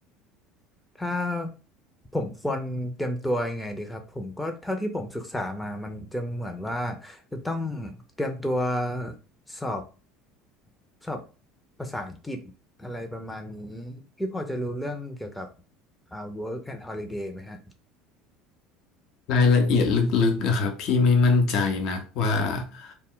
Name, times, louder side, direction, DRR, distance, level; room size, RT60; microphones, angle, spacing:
voice 1, 1.0-1.5 2.1-9.2 9.5-9.8 11.0-11.2 11.8-12.4 12.8-15.5 16.1-17.6, left 1 dB, 5° left, 0.5 m, -31 dB
voice 2, 19.3-22.9, left 4 dB, 60° left, 0.6 m, -22 dB
2.1 x 2.0 x 3.7 m
hypercardioid pair, 85°, 0 cm